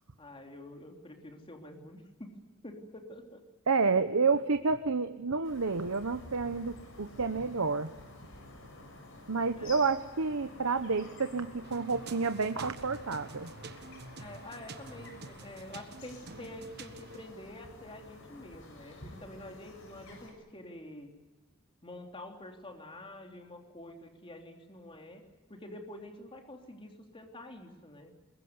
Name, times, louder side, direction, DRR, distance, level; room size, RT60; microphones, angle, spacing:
voice 1, 0.2-2.4 2.6-3.4 9.6-9.8 14.2-21.1 21.8-25.2 25.5-28.1, left 1 dB, 25° left, 3 dB, 3.3 m, -47 dB
voice 2, 3.7-7.9 9.3-13.5, right 4 dB, 90° right, 9 dB, 1.0 m, -29 dB
sound 1, 5.4-20.3, left 2 dB, 65° left, 6.8 m, -51 dB
sound 2, 11.6-17.3, right 4 dB, 50° right, 1.4 m, -49 dB
22.0 x 22.0 x 9.6 m, 1.1 s
head